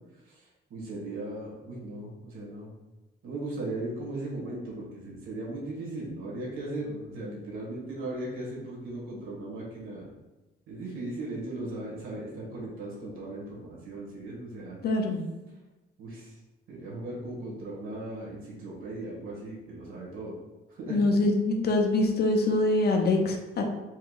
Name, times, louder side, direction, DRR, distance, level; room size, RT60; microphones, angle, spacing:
voice 1, 0.2-2.7 3.2-10.1 10.7-14.8 16.0-16.4 16.7-20.3 20.7-21.0, right 2 dB, 85° right, -5 dB, 1.5 m, -37 dB
voice 2, 14.8-15.2 20.9-23.6, left 2 dB, 50° left, 2 dB, 0.6 m, -24 dB
4.5 x 2.9 x 2.4 m, 1.1 s
cardioid pair, 115°, 20 cm